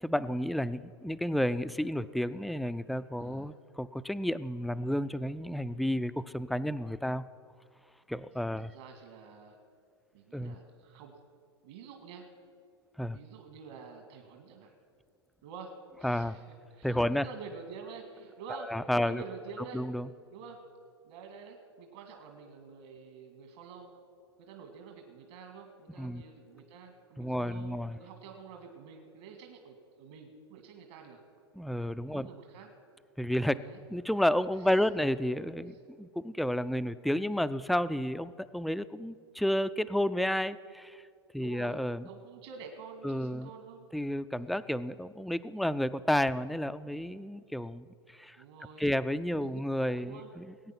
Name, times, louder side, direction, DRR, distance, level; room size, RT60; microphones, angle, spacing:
voice 1, 0.0-7.2 8.1-8.7 10.3-10.6 13.0-13.2 16.0-16.4 16.8-17.3 18.7-19.2 19.7-20.1 26.0-26.2 27.2-28.0 31.6-32.3 33.2-33.6 33.9-41.0 41.3-42.1 43.0-43.5 43.9-48.4 48.8-50.7, equal, ahead, 14 dB, 0.3 m, -31 dB
voice 2, 3.2-3.5 8.7-9.6 10.1-11.2 11.6-12.3 13.1-14.8 15.4-16.4 16.7-19.8 20.3-20.6 21.0-23.9 24.4-31.2 32.1-32.7 33.5-33.8 34.6-34.7 41.4-41.8 42.1-43.9 48.4-48.9 49.4-49.6 49.9-50.3, right 5 dB, 65° right, 4 dB, 2.0 m, -48 dB
20.0 x 8.8 x 5.9 m, 2.2 s
hypercardioid pair, 105°, 14 cm